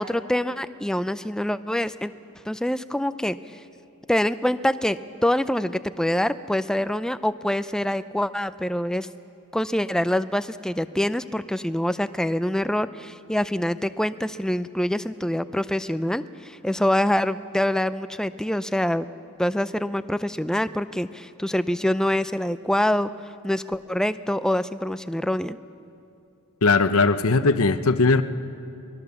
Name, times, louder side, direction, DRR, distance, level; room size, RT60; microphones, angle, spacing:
voice 1, 0.0-2.1 2.5-3.4 4.1-9.1 9.5-19.1 19.4-23.1 23.4-25.6, left 1 dB, 5° left, 13 dB, 0.4 m, -25 dB
voice 2, 26.6-28.2, left 3 dB, 75° left, 10 dB, 0.9 m, -19 dB
24.0 x 20.5 x 7.0 m, 2.6 s
head